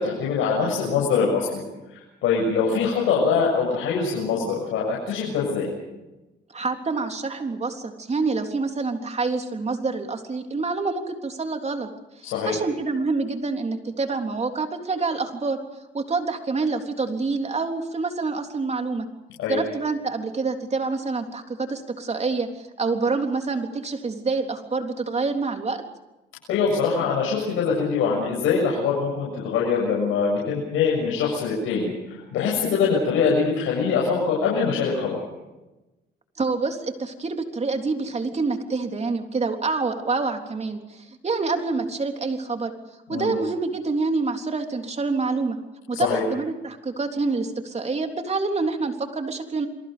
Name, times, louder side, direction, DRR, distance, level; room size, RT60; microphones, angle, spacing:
voice 1, 0.0-1.6 1.9-5.7 12.3-12.6 19.4-19.6 26.5-35.2 43.1-43.3 45.9-46.2, left 5 dB, 90° left, -3 dB, 7.1 m, -23 dB
voice 2, 6.5-11.9 12.2-15.6 15.9-19.1 19.5-25.8 36.4-42.7 43.1-45.6 45.9-49.7, right 3 dB, 35° right, 5 dB, 3.6 m, -27 dB
29.5 x 22.5 x 5.3 m, 1.0 s
cardioid pair, 90°, 20 cm